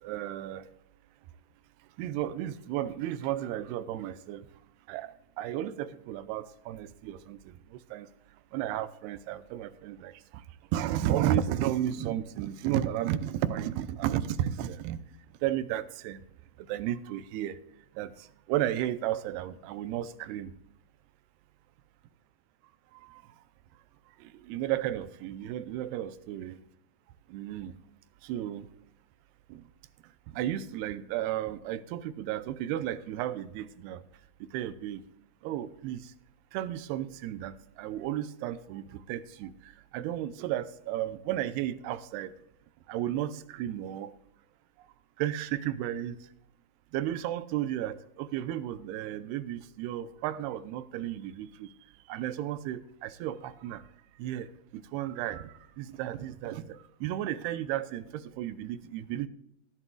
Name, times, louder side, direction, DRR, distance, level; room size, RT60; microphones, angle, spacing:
voice 1, 0.0-0.7 2.0-4.5 4.9-8.1 8.5-10.4 10.7-15.0 15.4-16.2 16.6-17.6 18.0-20.5 22.9-23.2 24.2-26.6 27.3-27.8 28.2-28.7 29.5-29.6 30.3-34.0 34.5-35.0 35.4-36.1 36.5-42.4 42.9-44.1 45.2-46.2 46.9-51.7 52.1-53.8 54.2-59.3, right 12 dB, 80° right, 12 dB, 2.6 m, -33 dB
18.0 x 11.0 x 2.3 m, 0.77 s
omnidirectional pair, 4.8 m